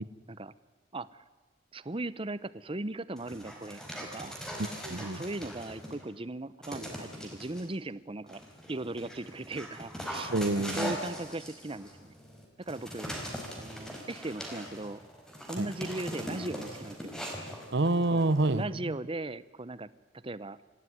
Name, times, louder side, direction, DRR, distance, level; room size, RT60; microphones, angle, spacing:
voice 1, 1.7-3.8 4.1-4.4 5.0-8.4 8.7-10.3 10.6-12.1 12.6-13.1 13.6-15.0 15.5-17.1 18.1-18.2 18.5-19.9 20.1-20.6, right 2 dB, 25° right, 17 dB, 0.8 m, -38 dB
Dog, 3.2-6.1 6.6-7.6 8.3-18.6, equal, 5° left, 4.7 m, -41 dB
voice 2, 4.6-5.2 10.3-11.0 15.6-15.7 17.7-18.9, right 2 dB, 60° right, 16 dB, 0.9 m, -28 dB
27.0 x 16.0 x 9.6 m, 1.3 s
head